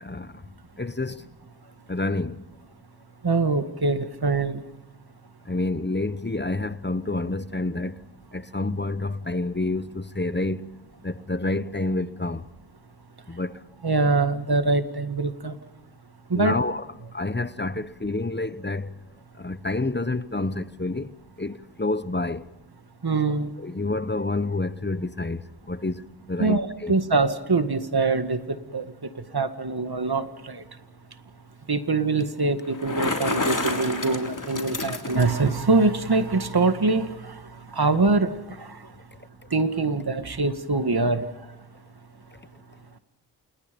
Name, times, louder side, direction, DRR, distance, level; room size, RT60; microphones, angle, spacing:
voice 1, 0.0-0.4 0.8-1.2 1.9-2.4 5.5-8.0 8.3-10.7 11.0-12.4 13.3-13.5 16.3-16.9 17.1-18.9 19.4-22.4 23.6-25.4 25.7-26.0 26.3-27.0, left 2 dB, 25° left, 1.1 m, -28 dB
voice 2, 3.2-4.6 13.8-15.6 16.3-16.6 23.0-23.5 26.4-28.9 29.3-30.6 31.7-37.4 37.7-38.8 39.5-41.3, right 3 dB, 65° right, 1.9 m, -24 dB
Bicycle, 32.6-35.5, left 3 dB, 50° left, 3.4 m, -29 dB
29.0 x 28.5 x 5.3 m
wide cardioid pair, 45°, 40 cm